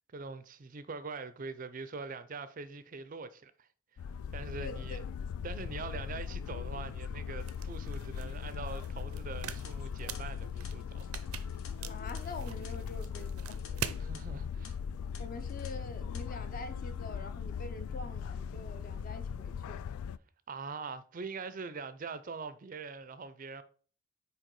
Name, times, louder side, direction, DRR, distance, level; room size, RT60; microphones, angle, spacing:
voice 1, 0.1-3.7 4.3-5.0 5.4-11.1 14.0-14.8 20.5-23.6, right 4 dB, 40° right, 0.4 m, -43 dB
sound 1, 4.0-20.2, left 7 dB, 85° left, 0.3 m, -39 dB
voice 2, 4.6-5.0 11.9-13.6 15.2-19.9, left 2 dB, 40° left, 0.7 m, -45 dB
sound 2, 7.4-14.0, right 8 dB, 90° right, 0.6 m, -44 dB
sound 3, 9.4-13.7 14.0-14.2 14.6-14.7 15.1-15.7 16.0-16.2, left 6 dB, 70° left, 1.3 m, -54 dB
6.4 x 4.4 x 4.7 m
head